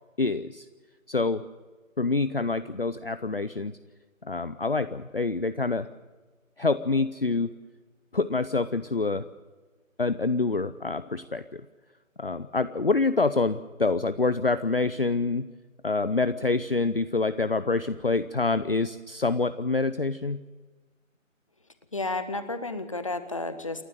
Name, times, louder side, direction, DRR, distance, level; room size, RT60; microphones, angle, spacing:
voice 1, 0.2-0.7 1.1-1.4 2.0-3.7 4.3-5.9 6.6-7.5 8.1-9.3 10.0-11.6 12.2-15.5 15.8-20.4, left 3 dB, 45° left, 12 dB, 0.7 m, -26 dB
voice 2, 21.9-23.8, left 2 dB, 25° left, 11 dB, 1.1 m, -32 dB
28.5 x 12.0 x 9.2 m, 1.3 s
figure-of-eight pair, 160°, 41 cm